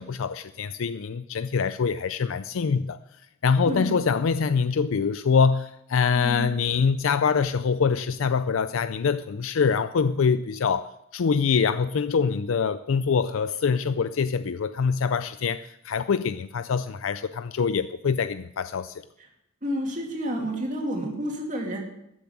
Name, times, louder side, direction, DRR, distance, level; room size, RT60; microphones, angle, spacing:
voice 1, 0.0-3.0 3.4-19.0, left 5 dB, 70° left, 0.4 m, -24 dB
voice 2, 6.1-6.5 19.6-21.8, equal, 35° right, 2.6 m, -30 dB
13.5 x 7.1 x 10.0 m
head